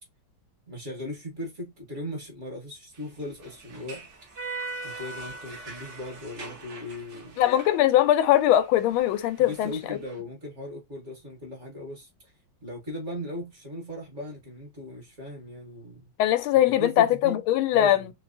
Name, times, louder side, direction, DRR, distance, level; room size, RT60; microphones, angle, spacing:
voice 1, 0.7-4.0 4.8-7.4 9.5-16.1 16.7-17.4 17.7-18.1, left 1 dB, 45° right, 1.2 m, -38 dB
sound 1, 2.9-10.2, right 3 dB, 60° right, 0.8 m, -41 dB
voice 2, 7.4-9.7 16.2-18.1, left 12 dB, 85° left, 1.4 m, -21 dB
3.3 x 3.0 x 2.5 m
omnidirectional pair, 2.2 m